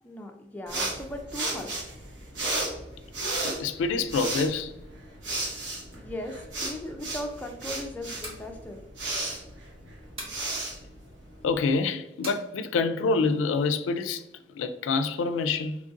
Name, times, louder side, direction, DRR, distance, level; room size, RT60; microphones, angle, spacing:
voice 1, 0.0-1.7 5.9-8.8, left 1 dB, 10° left, 0.3 m, -38 dB
sound 1, 0.7-11.6, right 2 dB, 65° right, 1.0 m, -34 dB
voice 2, 3.4-4.7 11.4-15.8, left 4 dB, 90° left, 0.3 m, -27 dB
sound 2, 8.2-8.5 10.2-10.4 12.2-12.4, right 1 dB, 30° right, 1.2 m, -39 dB
3.1 x 2.5 x 3.6 m
head